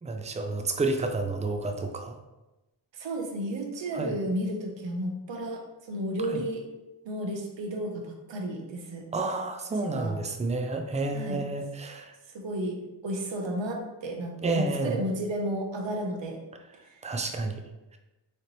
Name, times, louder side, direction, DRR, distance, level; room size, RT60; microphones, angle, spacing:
voice 1, 0.0-2.2 3.9-4.1 6.3-6.4 9.1-12.2 14.4-15.0 17.0-17.6, right 3 dB, 15° right, 5 dB, 0.4 m, -30 dB
voice 2, 2.9-6.6 7.0-9.1 9.8-10.2 11.1-11.4 12.3-16.4 16.9-17.0, right 1 dB, 70° right, 2 dB, 0.9 m, -33 dB
3.8 x 3.3 x 2.9 m, 1.0 s
cardioid pair, 55°, 46 cm